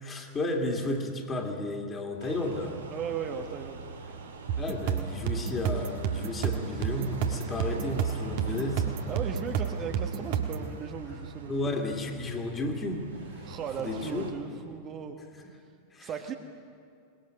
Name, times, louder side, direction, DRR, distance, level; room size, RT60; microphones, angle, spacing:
voice 1, 0.0-2.8 4.6-8.9 11.1-11.2 11.5-13.5 13.8-14.3 15.9-16.1, left 2 dB, 20° left, 3 dB, 2.5 m, -33 dB
sound 1, 2.2-14.3, right 4 dB, 70° right, 2.3 m, -44 dB
voice 2, 2.9-3.9 9.1-11.6 13.4-15.2 16.0-16.3, right 7 dB, 30° right, 4 dB, 1.3 m, -37 dB
sound 2, 4.5-10.7, right 7 dB, 50° right, 1.7 m, -30 dB
22.5 x 20.5 x 6.5 m, 2.3 s
figure-of-eight pair, 90°, 0 cm